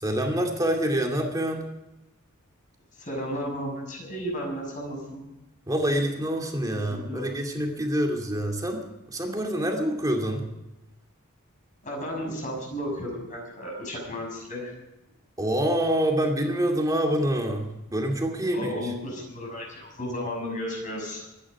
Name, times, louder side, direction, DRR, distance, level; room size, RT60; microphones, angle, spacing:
voice 1, 0.0-1.7 5.7-10.5 15.4-18.9, right 1 dB, 15° right, 2 dB, 2.5 m, -26 dB
voice 2, 3.0-5.2 6.7-7.3 11.8-14.7 18.5-21.3, equal, 35° left, 0 dB, 6.5 m, -33 dB
25.0 x 11.0 x 4.8 m, 0.95 s
head